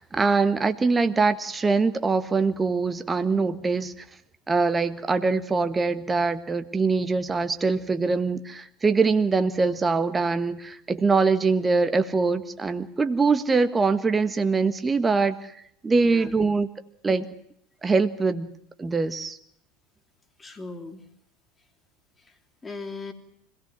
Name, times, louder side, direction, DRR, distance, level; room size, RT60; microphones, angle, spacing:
voice 1, 0.0-3.9 4.5-15.3 15.8-16.7 17.0-17.2 17.8-18.5 18.8-19.4, right 4 dB, 20° right, 10 dB, 1.5 m, -23 dB
voice 2, 20.4-21.0 22.2-23.1, left 3 dB, 20° left, 5 dB, 3.4 m, -39 dB
25.5 x 17.5 x 7.5 m, 0.73 s
figure-of-eight pair, 75°, 0 cm